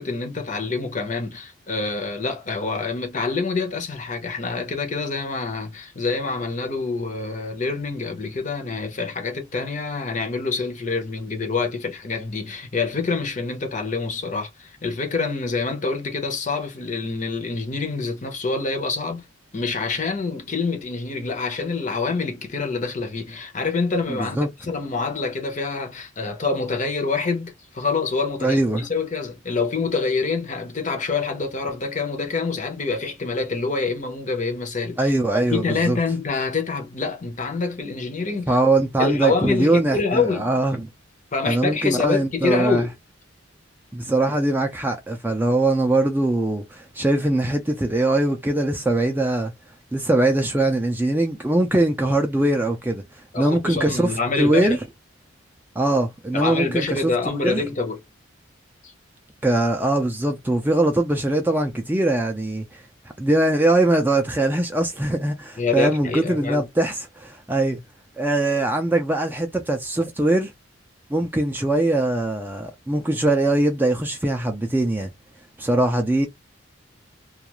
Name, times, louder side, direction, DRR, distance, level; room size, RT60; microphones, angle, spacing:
voice 1, 0.0-19.2 19.5-38.6 39.0-40.5 41.3-42.9 53.3-54.8 56.3-58.0 58.8-58.9 65.6-66.7, left 4 dB, 35° left, 0.6 m, -26 dB
voice 2, 24.1-24.5 28.4-28.8 35.0-36.0 38.5-40.9 41.5-42.9 43.9-49.5 49.9-53.0 53.4-54.8 55.8-57.1 57.4-57.6 59.4-62.8 63.2-67.8 68.2-70.5 71.1-75.1 75.6-76.3, right 2 dB, 10° right, 0.4 m, -21 dB
2.4 x 2.3 x 2.9 m
head